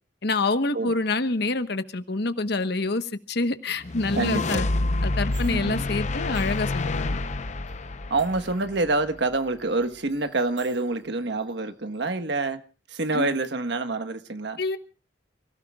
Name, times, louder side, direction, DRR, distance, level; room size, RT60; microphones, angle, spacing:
voice 1, 0.2-4.7 5.0-7.2 13.1-13.3 14.6-14.8, left 3 dB, 65° left, 1.2 m, -27 dB
sound 1, 3.8-9.2, left 2 dB, 40° left, 0.7 m, -28 dB
voice 2, 4.2-4.6 5.4-5.8 8.1-12.6 12.9-14.6, right 2 dB, 70° right, 1.4 m, -27 dB
sound 2, 5.3-5.8 6.3-7.3 7.7-8.9 9.2-11.5 11.9-12.1, right 7 dB, 85° right, 6.4 m, -55 dB
29.5 x 17.0 x 2.4 m
head